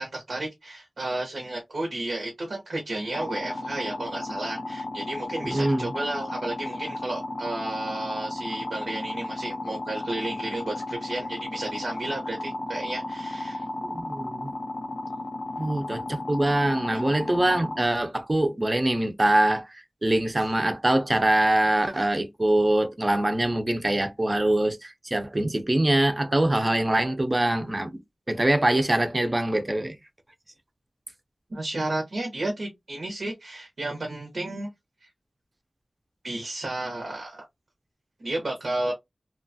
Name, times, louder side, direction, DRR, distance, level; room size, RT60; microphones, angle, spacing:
voice 1, 0.0-13.6 16.9-17.0 31.5-34.7 35.0-35.1 36.2-37.4 38.2-38.9, right 2 dB, 85° right, 0.8 m, -32 dB
sound 1, 3.1-17.9, left 2 dB, 85° left, 0.6 m, -34 dB
voice 2, 5.4-5.9 13.8-14.5 15.6-28.0 28.3-30.0, right 1 dB, 30° right, 0.5 m, -24 dB
2.9 x 2.3 x 2.6 m
wide cardioid pair, 75°, 0 cm